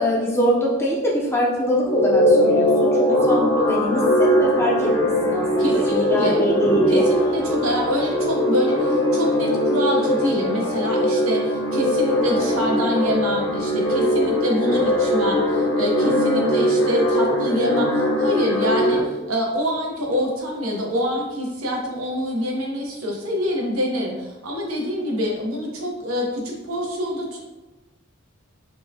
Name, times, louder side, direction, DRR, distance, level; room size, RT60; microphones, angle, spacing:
voice 1, 0.0-7.1, equal, 10° left, -4 dB, 0.5 m, -23 dB
sound 1, 1.8-19.0, equal, 65° left, 0.9 m, -20 dB
voice 2, 5.6-6.4 6.9-27.4, equal, 85° right, -1 dB, 0.8 m, -25 dB
4.4 x 2.2 x 2.7 m, 1.1 s
head